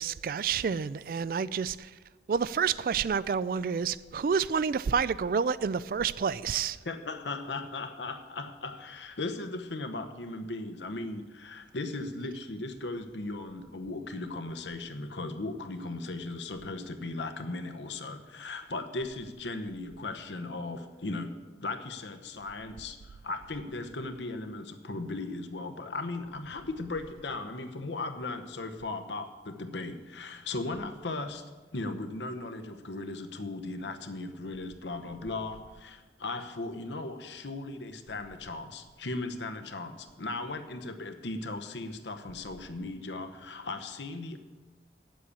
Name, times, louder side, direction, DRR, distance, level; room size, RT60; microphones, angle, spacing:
voice 1, 0.0-1.9 2.3-6.8, right 6 dB, 55° right, 0.3 m, -29 dB
voice 2, 6.8-21.4 21.6-31.4 31.7-44.4, left 2 dB, 90° left, 0.9 m, -37 dB
8.3 x 7.5 x 8.8 m
head